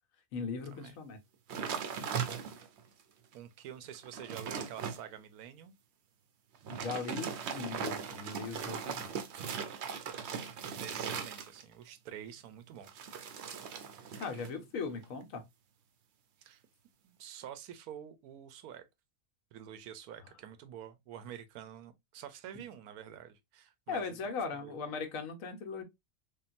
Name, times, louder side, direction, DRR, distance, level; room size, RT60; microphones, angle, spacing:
voice 1, 0.3-1.2 6.7-9.1 14.2-15.4 23.9-25.8, left 5 dB, 70° left, 1.0 m, -39 dB
sound 1, 1.5-2.8 3.3-3.4 3.9-5.0 6.5-11.8 12.8-14.5 14.8-15.2, right 7 dB, 65° right, 0.7 m, -39 dB
voice 2, 2.1-2.4 3.3-5.7 10.1-13.1 16.4-16.6 17.0-18.8 19.5-24.2 24.6-24.7, right 10 dB, 85° right, 1.1 m, -48 dB
3.6 x 2.2 x 2.4 m
omnidirectional pair, 1.5 m